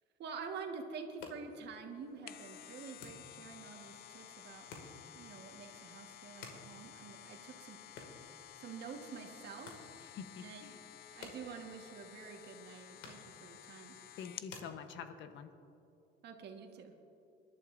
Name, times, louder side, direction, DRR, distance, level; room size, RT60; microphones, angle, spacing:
voice 1, 0.2-4.6 5.1-7.8 8.6-9.8 10.4-10.7 11.1-14.0 16.2-17.1, right 5 dB, 60° right, 3 dB, 1.5 m, -48 dB
sound 1, 0.9-15.4, left 3 dB, 90° left, 2.2 m, -57 dB
sound 2, 2.0-14.6 15.0-15.1, left 11 dB, 50° left, 0.4 m, -54 dB
voice 2, 10.0-10.8 14.2-15.5, left 7 dB, 70° left, 8 dB, 1.1 m, -47 dB
25.5 x 11.5 x 2.6 m, 2.7 s
cardioid pair, 130°, 20 cm